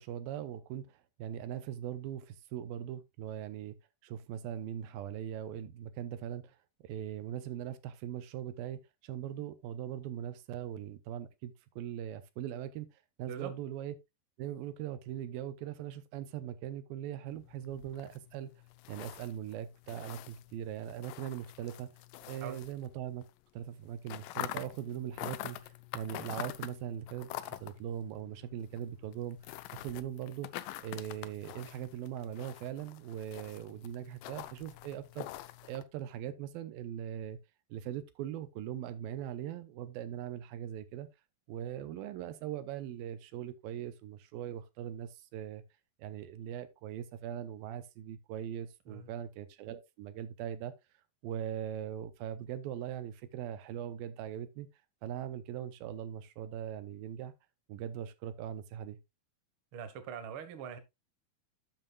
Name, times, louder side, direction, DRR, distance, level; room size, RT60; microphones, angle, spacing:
voice 1, 0.0-3.8 4.0-6.6 6.8-12.9 13.2-14.0 14.4-18.5 18.9-21.9 22.3-23.2 23.5-29.4 29.7-37.4 37.7-41.1 41.5-45.6 46.0-50.7 51.2-54.7 55.0-57.3 57.7-59.0, right 10 dB, 85° right, 2.5 m, -40 dB
sound 1, 17.3-23.3 23.6-35.8, left 15 dB, 80° left, 2.0 m, -46 dB
voice 2, 59.7-60.8, right 7 dB, 65° right, 1.3 m, -42 dB
12.0 x 7.5 x 2.4 m
omnidirectional pair, 4.3 m